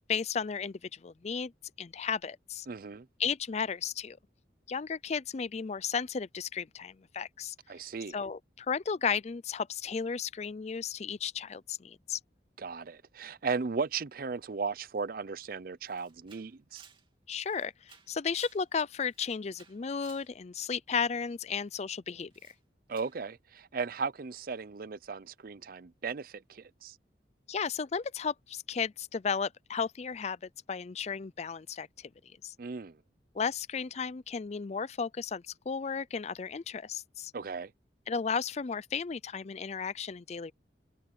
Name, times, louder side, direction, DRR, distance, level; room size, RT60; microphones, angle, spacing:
voice 1, 0.0-1.5 1.8-2.7 3.2-4.2 4.7-7.5 8.1-12.2 17.3-22.3 27.5-30.4 30.7-32.1 32.4-32.5 33.3-37.3 38.1-40.5, left 6 dB, 40° left, 0.4 m, -34 dB
voice 2, 2.7-3.1 7.7-8.1 12.6-16.8 22.9-27.0 32.6-33.0 37.3-37.7, right 4 dB, 55° right, 0.5 m, -36 dB
Camera, 15.4-15.5 15.8-18.7 19.0-20.3 22.3-22.6 22.9-23.2, right 6 dB, 30° right, 2.8 m, -58 dB
head